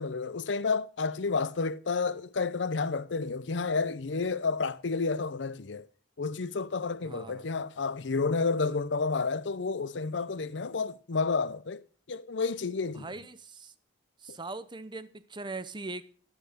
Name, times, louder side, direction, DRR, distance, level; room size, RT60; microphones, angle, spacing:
voice 1, 0.0-5.9 6.2-13.1, left 4 dB, 70° left, 0.7 m, -30 dB
voice 2, 7.0-7.5 12.9-13.7 14.2-16.1, right 3 dB, 25° right, 0.8 m, -40 dB
12.5 x 8.0 x 6.6 m
head